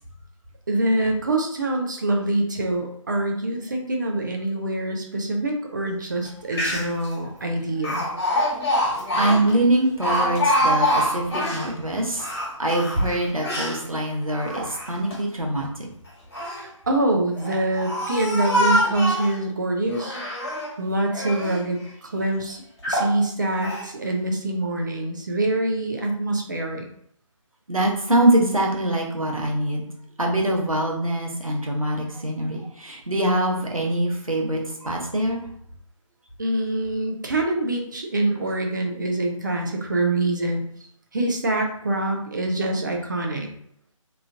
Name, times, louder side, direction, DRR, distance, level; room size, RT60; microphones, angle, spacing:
voice 1, 0.7-8.1 16.6-20.2 20.8-22.6 22.9-26.9 36.4-40.6 41.1-43.5, right 2 dB, 35° right, 2 dB, 0.4 m, -25 dB
Speech, 6.2-6.3 6.5-7.1 7.8-11.7 12.1-13.8 14.3-15.2 16.1-16.6 17.3-19.4 19.9-20.7 21.1-21.6 22.2-22.3 22.8-23.1 23.6-23.9, equal, 50° left, 1.4 m, -25 dB
voice 2, 9.2-12.3 12.6-15.9 27.7-29.8 30.2-35.4, right 1 dB, 85° right, 0 dB, 0.8 m, -23 dB
3.0 x 2.3 x 2.6 m, 0.67 s
figure-of-eight pair, 145°, 17 cm